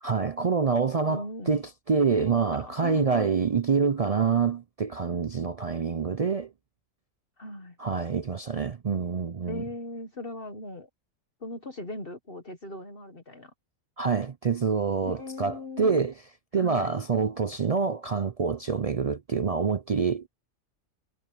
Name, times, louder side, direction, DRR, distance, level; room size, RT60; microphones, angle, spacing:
voice 1, 0.0-6.5 7.8-9.6 14.0-16.1 16.5-20.3, right 5 dB, 55° right, 0.4 m, -26 dB
voice 2, 1.0-1.6 2.2-3.4 7.4-7.8 9.5-10.9 11.4-13.5 15.0-16.0 16.5-17.0, left 2 dB, 45° left, 1.6 m, -39 dB
omnidirectional pair, 1.4 m